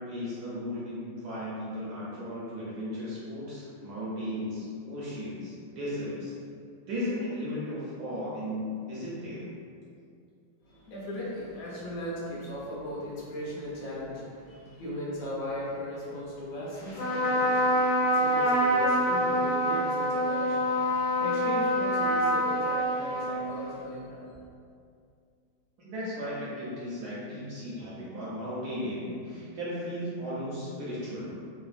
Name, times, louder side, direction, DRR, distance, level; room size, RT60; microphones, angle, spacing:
voice 1, 0.0-6.3 6.9-9.5 25.8-31.3, equal, 70° right, -8 dB, 1.0 m, -35 dB
voice 2, 10.6-24.3, equal, 60° left, -7 dB, 0.9 m, -38 dB
Trumpet, 16.9-23.8, equal, 80° left, 1.3 m, -26 dB
3.2 x 2.1 x 2.4 m, 2.3 s
omnidirectional pair, 2.2 m